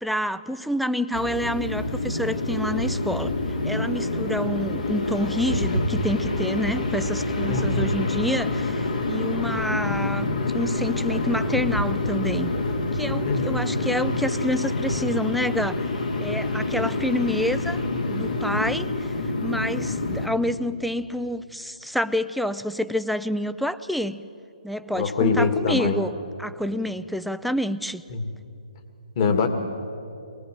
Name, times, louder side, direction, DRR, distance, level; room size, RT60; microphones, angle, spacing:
voice 1, 0.0-3.3 3.6-12.5 12.9-15.8 16.2-17.8 18.1-19.1 19.4-24.2 24.6-26.1 26.4-28.0, left 1 dB, ahead, 13 dB, 0.5 m, -28 dB
sound 1, 1.1-20.3, left 2 dB, 75° left, 2.8 m, -27 dB
voice 2, 7.5-7.9 13.2-13.6 16.7-16.9 24.9-26.0 28.1-28.2 29.2-29.5, left 4 dB, 40° left, 6 dB, 2.1 m, -23 dB
23.5 x 20.0 x 7.7 m, 2.7 s
figure-of-eight pair, 135°, 4 cm